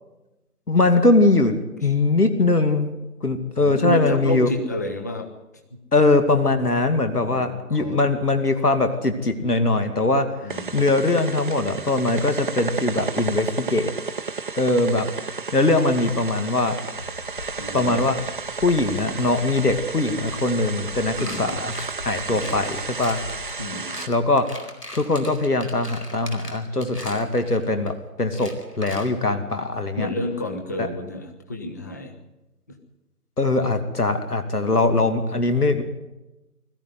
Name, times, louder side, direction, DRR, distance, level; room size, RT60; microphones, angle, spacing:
voice 1, 0.7-2.9 3.2-4.5 5.9-13.9 14.6-15.1 15.5-16.8 17.7-18.2 18.6-21.8 22.0-23.2 24.1-24.5 24.9-30.1 30.8-30.9 33.4-35.8, left 2 dB, 75° left, 8 dB, 2.7 m, -21 dB
voice 2, 3.6-5.3 5.7-5.8 7.1-8.0 10.4-10.8 17.6-18.0 21.2-21.6 22.3-22.4 23.6-24.0 30.0-32.1 32.7-32.8, left 1 dB, 10° left, 4 dB, 0.9 m, -30 dB
sound 1, 10.5-24.1, right 4 dB, 35° right, 0.8 m, -32 dB
sound 2, 16.9-23.7, left 3 dB, 55° left, 3.5 m, -42 dB
sound 3, 21.2-27.9 28.3-29.1, left 1 dB, 90° left, 4.3 m, -40 dB
21.0 x 14.5 x 9.6 m, 1.0 s
figure-of-eight pair, 150°, 46 cm